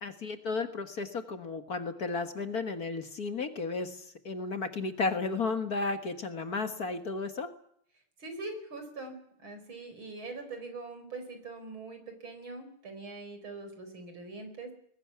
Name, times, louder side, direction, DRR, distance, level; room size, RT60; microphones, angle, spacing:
voice 1, 0.0-4.0 4.3-7.5, left 4 dB, 45° left, 7 dB, 1.9 m, -33 dB
voice 2, 8.2-14.7, right 3 dB, 70° right, 7 dB, 5.5 m, -43 dB
21.0 x 18.5 x 9.7 m, 0.66 s
omnidirectional pair, 2.3 m